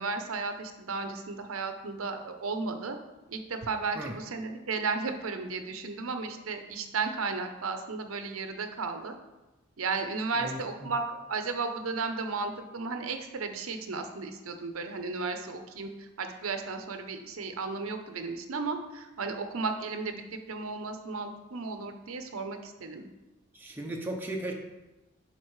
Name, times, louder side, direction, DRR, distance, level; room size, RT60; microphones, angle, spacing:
voice 1, 0.0-3.0 3.3-9.1 9.8-11.0 11.3-23.1, right 4 dB, 85° right, 6 dB, 0.7 m, -34 dB
voice 2, 10.4-10.9 23.5-24.5, right 1 dB, 10° right, 0 dB, 0.7 m, -36 dB
11.0 x 4.2 x 3.1 m, 1.1 s
head